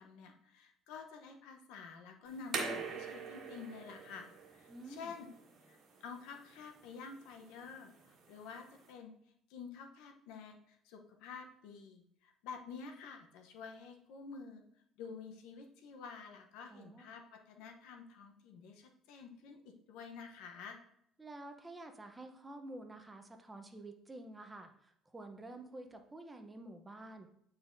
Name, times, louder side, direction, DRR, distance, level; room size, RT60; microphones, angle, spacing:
voice 1, 0.0-5.3 5.6-9.1 9.5-14.6 15.0-20.8, left 5 dB, 85° left, 4 dB, 0.8 m, -50 dB
sound 1, 2.3-8.9, right 5 dB, 55° right, 1.5 m, -45 dB
voice 2, 4.7-5.1 16.7-17.1 21.2-27.3, right 2 dB, 15° right, 5 dB, 0.7 m, -50 dB
9.1 x 4.0 x 2.6 m, 0.71 s
cardioid pair, 110°, 0 cm